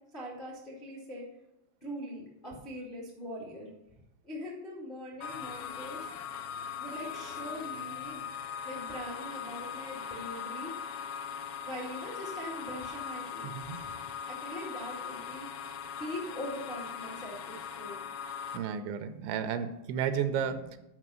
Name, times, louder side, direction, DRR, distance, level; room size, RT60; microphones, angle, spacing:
voice 1, 0.1-1.3 1.8-3.7 4.2-6.0 6.7-8.2 8.6-10.7 11.6-15.7 16.0-18.0 20.2-20.7, equal, 50° left, -3 dB, 0.6 m, -42 dB
sound 1, 5.2-18.6, left 7 dB, 75° left, 2.3 m, -40 dB
voice 2, 13.4-13.8 18.5-20.8, right 8 dB, 85° right, 10 dB, 2.9 m, -33 dB
11.0 x 5.6 x 6.2 m, 0.89 s
omnidirectional pair, 5.2 m